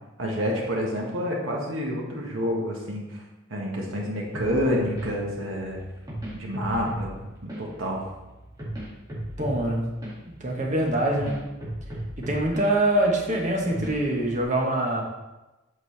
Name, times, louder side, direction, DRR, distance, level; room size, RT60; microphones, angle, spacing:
voice 1, 0.2-3.2 3.5-5.8 6.3-8.0, equal, 75° right, -2 dB, 1.6 m, -28 dB
sound 1, 4.3-14.4, right 1 dB, 20° right, 2.0 m, -37 dB
voice 2, 9.4-10.1 10.4-11.4 12.2-15.0, right 1 dB, 35° right, 0 dB, 1.2 m, -24 dB
8.0 x 5.3 x 3.3 m, 1.1 s
head